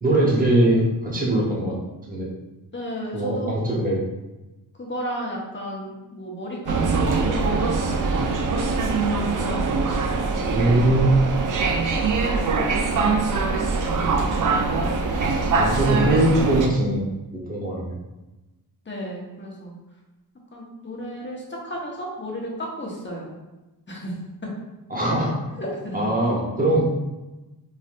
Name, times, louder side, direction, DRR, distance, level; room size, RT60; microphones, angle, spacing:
voice 1, 0.0-1.7 2.1-2.3 3.1-4.0 10.5-11.2 15.6-17.1 17.5-18.0 24.9-25.6 25.9-26.8, right 1 dB, 20° right, -4 dB, 0.9 m, -21 dB
voice 2, 2.7-3.7 4.8-9.8 10.3-11.0 11.9-14.9 18.9-19.8 20.5-23.3 23.9-24.1 25.6-26.1, equal, 30° left, -2 dB, 0.9 m, -34 dB
sound 1, 6.7-16.7, right 4 dB, 50° right, 0.4 m, -23 dB
3.3 x 2.6 x 2.4 m, 1.1 s
cardioid pair, 85°, 41 cm